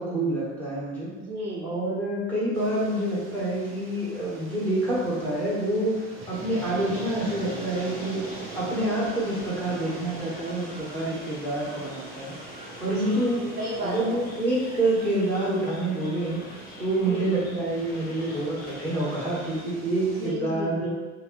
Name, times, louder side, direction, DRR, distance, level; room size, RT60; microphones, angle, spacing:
voice 1, 0.0-1.1 1.6-8.3 8.5-12.3 12.8-13.4 13.8-16.4 16.8-20.9, right 1 dB, 5° left, -8 dB, 1.2 m, -27 dB
voice 2, 1.1-1.7 13.0-14.2 17.0-17.4 20.1-20.9, right 1 dB, 90° right, -2 dB, 0.5 m, -34 dB
sound 1, 2.5-20.3, right 3 dB, 30° right, 0.7 m, -43 dB
sound 2, 6.5-19.6, left 1 dB, 20° left, 0.7 m, -46 dB
2.6 x 2.5 x 3.0 m, 1.2 s
figure-of-eight pair, 60°, 43 cm